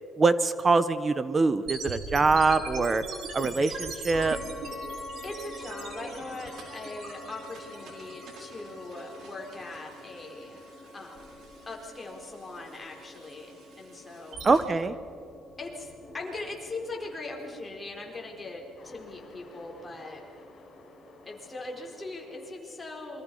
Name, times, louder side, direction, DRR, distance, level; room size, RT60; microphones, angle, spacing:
voice 1, 0.2-3.0 3.3-4.4 14.4-14.9, right 3 dB, 25° right, 13 dB, 1.0 m, -24 dB
sound 1, 1.7-14.6, right 4 dB, 60° right, 4.6 m, -42 dB
sound 2, 4.1-22.5, left 1 dB, 45° left, 5.9 m, -47 dB
voice 2, 5.2-10.6 10.9-11.4 11.7-14.4 15.6-20.2 21.2-23.2, left 2 dB, 15° left, -1 dB, 4.5 m, -40 dB
27.5 x 24.0 x 5.6 m, 2.5 s
cardioid pair, 135°, 0 cm